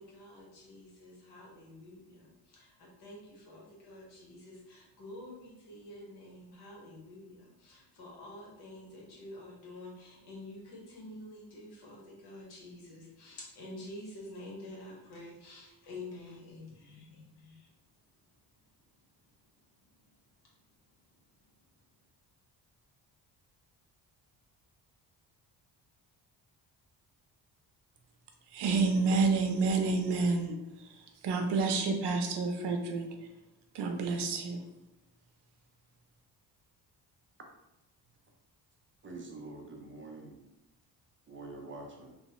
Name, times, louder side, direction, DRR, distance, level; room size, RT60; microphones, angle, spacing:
voice 1, 0.0-17.7, left 1 dB, 65° left, 1.2 m, -48 dB
voice 2, 28.5-30.5 31.2-33.1 33.7-34.6, right 4 dB, 70° right, 0.6 m, -29 dB
voice 3, 39.0-40.3 41.3-42.2, right 2 dB, 30° right, 0.5 m, -45 dB
3.0 x 2.2 x 2.9 m
cardioid pair, 105°, 42 cm